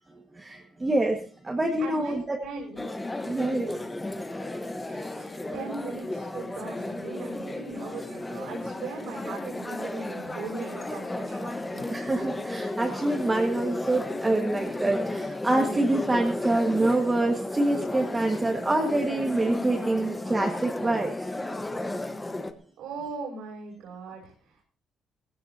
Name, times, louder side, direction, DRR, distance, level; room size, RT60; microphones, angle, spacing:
voice 1, 0.3-2.4 3.2-3.8 11.9-21.1, right 2 dB, 15° right, 1 dB, 1.7 m, -26 dB
voice 2, 1.8-2.8 4.6-11.9 22.8-24.6, right 4 dB, 80° right, -3 dB, 6.6 m, -39 dB
sound 1, 2.8-22.5, left 2 dB, 10° left, 1.2 m, -34 dB
18.5 x 16.5 x 2.8 m, 0.40 s
cardioid pair, 155°, 0 cm